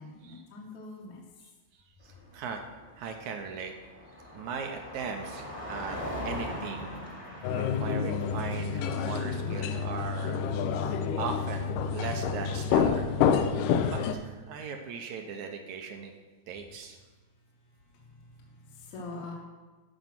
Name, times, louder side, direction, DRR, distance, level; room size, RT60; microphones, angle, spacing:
voice 1, 0.0-1.5 17.3-19.3, left 3 dB, 60° left, -3 dB, 2.3 m, -45 dB
Car passing by, 2.0-10.3, left 1 dB, 20° left, 1.0 m, -41 dB
voice 2, 2.0-2.6 3.0-3.7 4.3-6.0 6.2-7.0 7.5-10.4 10.8-13.1 13.8-16.1 16.5-17.0, right 6 dB, 75° right, 4 dB, 1.8 m, -38 dB
sound 1, 7.4-14.1, left 7 dB, 80° left, 2.1 m, -28 dB
13.5 x 5.3 x 6.0 m, 1.3 s
omnidirectional pair, 4.1 m